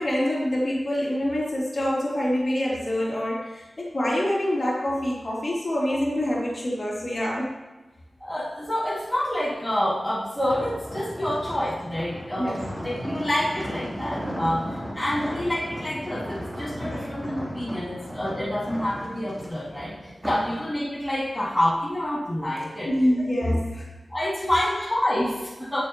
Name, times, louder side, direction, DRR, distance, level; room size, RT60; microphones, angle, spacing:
voice 1, 0.0-7.5 12.4-12.6 22.8-23.9 24.4-24.8, left 1 dB, 45° left, -6 dB, 3.4 m, -26 dB
voice 2, 8.2-19.9 20.2-22.9 24.1-25.8, left 1 dB, 5° left, -8 dB, 3.0 m, -27 dB
sound 1, 10.4-20.6 21.0-21.3, equal, 15° right, 3.3 m, -35 dB
17.5 x 7.1 x 3.1 m, 1.2 s
wide cardioid pair, 80°, 0 cm